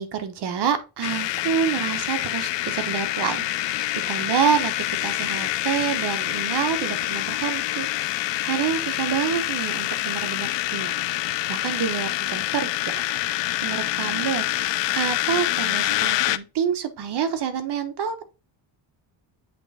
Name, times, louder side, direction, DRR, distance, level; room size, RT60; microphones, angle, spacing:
voice 1, 0.0-4.7 5.0-7.9 8.2-10.9 11.5-13.0 13.6-18.2, right 8 dB, 60° right, 8 dB, 1.2 m, -27 dB
sound 1, 1.0-16.4, left 16 dB, 70° left, 0.5 m, -26 dB
8.1 x 3.4 x 4.2 m, 0.29 s
cardioid pair, 130°, 45 cm